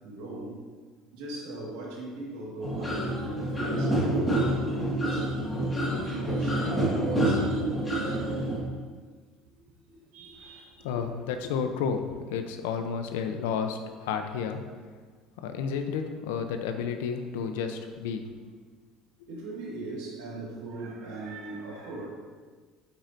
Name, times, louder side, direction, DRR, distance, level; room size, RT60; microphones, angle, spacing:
voice 1, 0.0-0.6 1.1-5.4 6.1-8.5 9.9-10.8 19.3-22.1, right 2 dB, 80° right, -3 dB, 1.7 m, -40 dB
sound 1, 2.6-8.6, right 1 dB, 15° left, 1.8 m, -27 dB
voice 2, 10.8-12.0 12.3-14.6 15.4-18.2, left 6 dB, 90° left, 7 dB, 0.5 m, -31 dB
8.1 x 4.6 x 2.6 m, 1.5 s
supercardioid pair, 105°, 0 cm